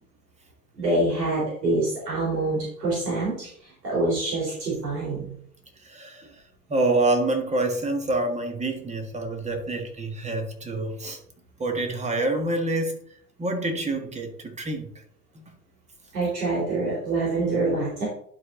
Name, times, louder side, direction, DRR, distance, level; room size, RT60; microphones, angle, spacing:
voice 1, 0.8-3.5 3.8-5.3 16.1-18.1, right 2 dB, 75° right, -5 dB, 3.9 m, -25 dB
voice 2, 5.9-6.3 6.7-11.2 11.6-13.0 13.4-14.9, right 2 dB, 15° right, 5 dB, 1.7 m, -26 dB
11.0 x 4.8 x 3.8 m, 0.64 s
figure-of-eight pair, 90°, 49 cm